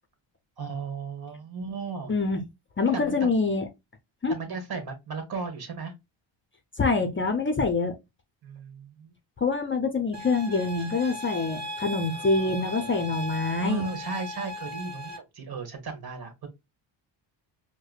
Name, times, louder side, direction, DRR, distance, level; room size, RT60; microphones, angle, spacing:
voice 1, 0.6-2.1 2.9-3.3 4.3-5.9 8.4-9.1 12.1-13.0 13.6-16.5, right 4 dB, 50° right, 1.4 m, -35 dB
voice 2, 2.1-2.4 2.8-3.7 4.2-4.3 6.8-8.0 9.4-13.9, left 3 dB, 25° left, 0.6 m, -25 dB
sound 1, 10.1-15.2, left 1 dB, 20° right, 1.0 m, -37 dB
4.7 x 2.2 x 2.3 m
cardioid pair, 75°, 49 cm